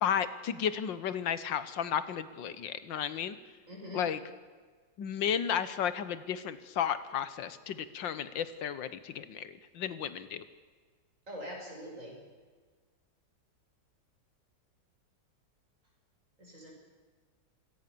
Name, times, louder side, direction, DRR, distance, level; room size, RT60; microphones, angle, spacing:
voice 1, 0.0-3.4 3.9-4.2 5.0-10.4, left 8 dB, 90° left, 13 dB, 1.8 m, -33 dB
voice 2, 3.7-4.0 11.3-12.2 16.4-16.7, equal, 45° right, 0 dB, 6.5 m, -43 dB
26.5 x 17.5 x 6.9 m, 1.4 s
omnidirectional pair, 2.0 m